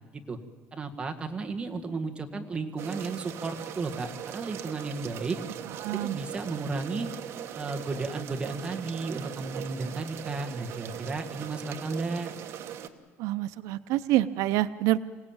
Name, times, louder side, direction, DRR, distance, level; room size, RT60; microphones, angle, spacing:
voice 1, 0.7-5.4 5.9-7.1 7.5-12.3, right 3 dB, 20° right, 4 dB, 1.8 m, -33 dB
sound 1, 2.8-12.9, right 10 dB, 55° right, 1.4 m, -40 dB
voice 2, 5.8-6.2 13.2-15.0, right 15 dB, 90° right, 13 dB, 0.6 m, -27 dB
26.5 x 17.5 x 8.9 m, 1.5 s
cardioid pair, 155°, 5 cm